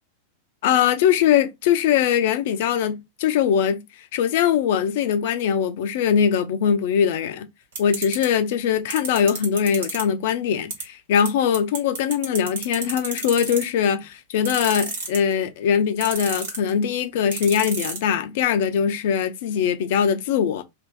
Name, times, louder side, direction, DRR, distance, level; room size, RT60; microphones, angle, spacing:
voice 1, 0.6-3.8 4.1-7.5 7.8-20.6, left 8 dB, 50° left, 0.5 m, -21 dB
sound 1, 7.7-8.2 8.9-10.0 10.7-10.8 11.2-11.3 11.5-13.8 14.4-15.3 16.0-16.7 17.3-18.0, right 4 dB, 60° right, 1.3 m, -28 dB
2.6 x 2.4 x 3.7 m
figure-of-eight pair, 90°, 0 cm